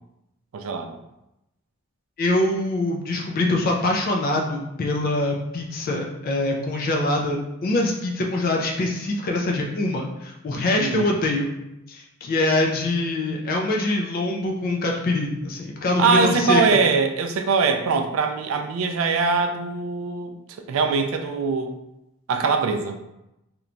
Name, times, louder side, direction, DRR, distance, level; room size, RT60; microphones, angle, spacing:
voice 1, 0.5-1.0 10.8-11.2 16.0-20.4 20.7-21.8 22.3-23.0, right 4 dB, 60° right, 6 dB, 0.3 m, -22 dB
voice 2, 2.2-11.5 11.9-16.8, left 2 dB, 40° left, 0 dB, 0.3 m, -24 dB
2.9 x 2.1 x 2.5 m, 0.89 s
head